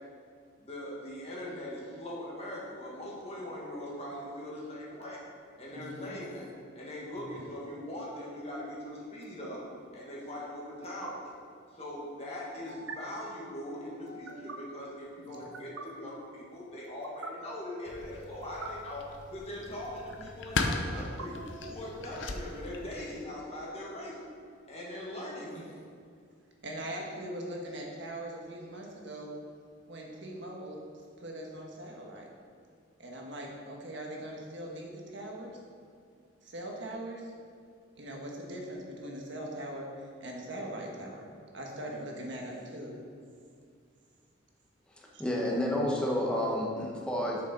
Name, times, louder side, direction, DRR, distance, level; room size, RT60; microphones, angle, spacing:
voice 1, 0.6-5.2 5.6-6.5 6.7-9.6 9.9-11.2 11.7-21.4 21.6-24.2 24.7-25.7, left 1 dB, 30° left, -5 dB, 1.6 m, -41 dB
voice 2, 5.7-6.2 15.3-15.5 25.4-25.6 26.6-29.4 29.9-30.8 31.2-32.3 33.0-35.6 36.4-37.3 38.0-41.2 41.5-43.0 45.1-45.2, right 1 dB, 65° right, 0 dB, 1.4 m, -41 dB
sound 1, 7.2-7.5 9.2-9.5 10.8-11.1 12.7-13.0 14.1-14.6 15.3-15.8 16.8-17.3 18.2-18.7 19.7-20.3 21.0-21.9, right 3 dB, 85° right, 0.8 m, -45 dB
sound 2, 17.9-23.2, left 3 dB, 65° left, 0.7 m, -37 dB
voice 3, 44.9-47.4, left 1 dB, 5° left, -3 dB, 1.3 m, -30 dB
8.8 x 6.7 x 4.0 m, 2.3 s
head